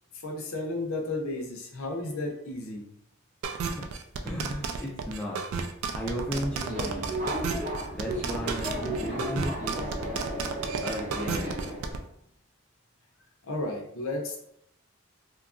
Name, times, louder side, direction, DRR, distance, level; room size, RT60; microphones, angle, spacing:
voice 1, 0.2-2.9 13.4-14.4, left 2 dB, 80° left, 0 dB, 0.6 m, -33 dB
sound 1, 3.4-12.0, right 5 dB, 90° right, 0.3 m, -32 dB
voice 2, 4.2-5.4 5.9-7.2 7.9-10.0 10.8-11.5, equal, 5° left, -3 dB, 0.3 m, -35 dB
Subway metro underground, 6.3-11.9, right 1 dB, 35° right, 0.7 m, -34 dB
2.8 x 2.3 x 2.4 m, 0.73 s
head